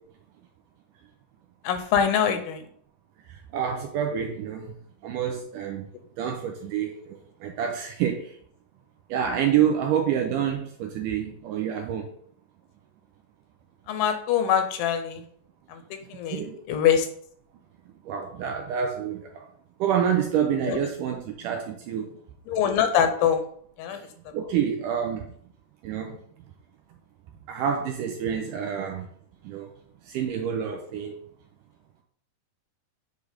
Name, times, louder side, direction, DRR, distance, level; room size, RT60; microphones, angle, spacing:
voice 1, 1.6-2.7 13.9-15.2 15.7-15.8 16.1-17.1 20.7-20.8 22.5-23.4 23.8-24.0, left 8 dB, 80° left, 8 dB, 2.5 m, -24 dB
voice 2, 3.3-4.8 5.0-5.9 6.2-8.4 9.1-12.1 16.3-16.6 18.1-19.5 19.8-22.2 23.9-24.1 24.3-25.3 25.8-26.2 27.5-29.1 29.4-29.7 30.0-31.2, right 8 dB, 80° right, 3 dB, 1.9 m, -28 dB
8.1 x 3.3 x 4.9 m, 0.62 s
omnidirectional pair, 4.3 m